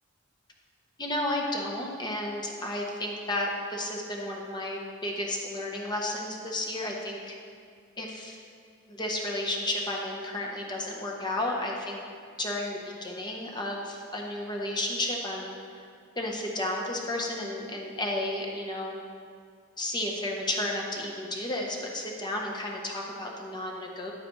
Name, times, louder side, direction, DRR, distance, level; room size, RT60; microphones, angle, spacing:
voice 1, 1.0-7.4 8.0-8.4 8.9-12.0 12.4-15.5 16.2-19.0 19.8-24.1, left 1 dB, 20° left, -1 dB, 0.9 m, -32 dB
9.2 x 8.7 x 3.1 m, 2.2 s
head